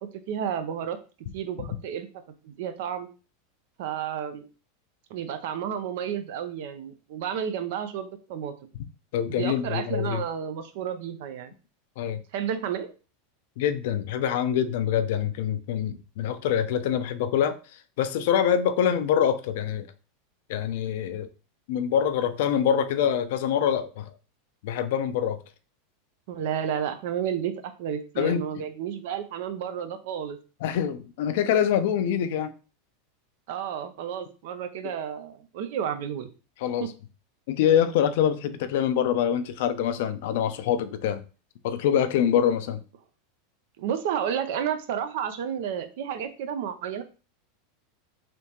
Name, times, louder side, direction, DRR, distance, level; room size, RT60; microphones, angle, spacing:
voice 1, 0.3-1.0 1.3-2.1 2.4-3.1 3.8-4.4 5.1-8.5 9.3-11.5 12.3-12.9 26.3-27.5 27.8-30.4 33.5-36.3 36.8-36.9 43.8-47.0, right 8 dB, 65° right, 0.5 m, -31 dB
voice 2, 9.1-10.2 12.0-12.2 13.6-17.6 18.0-19.9 20.5-21.3 21.7-24.0 24.6-25.4 28.2-28.4 30.6-32.5 36.6-36.9 37.5-41.2 41.6-42.8, left 9 dB, 70° left, 0.4 m, -25 dB
3.4 x 2.7 x 2.9 m
hypercardioid pair, 105°, 0 cm